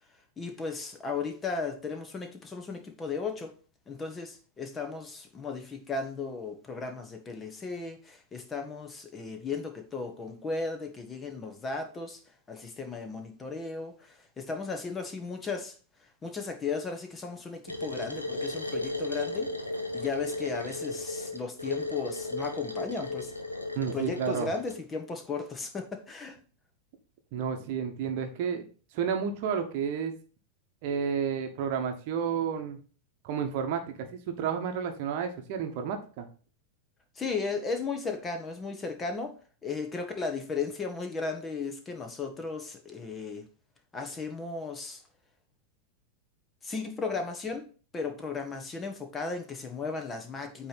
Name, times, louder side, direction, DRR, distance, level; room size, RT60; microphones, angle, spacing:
voice 1, 0.4-3.5 3.9-12.2 12.5-15.7 16.2-19.5 19.9-23.3 23.9-26.4 37.1-39.3 39.6-43.5 43.9-45.0 46.6-47.6 47.9-50.7, left 4 dB, 20° left, 1.4 m, -35 dB
sound 1, 17.7-24.8, left 2 dB, 85° left, 1.0 m, -35 dB
voice 2, 23.8-24.5 27.3-28.6 28.9-30.1 30.8-32.8 33.2-36.2, right 7 dB, 45° right, 1.2 m, -31 dB
8.6 x 3.3 x 6.0 m
figure-of-eight pair, 90°, 0 cm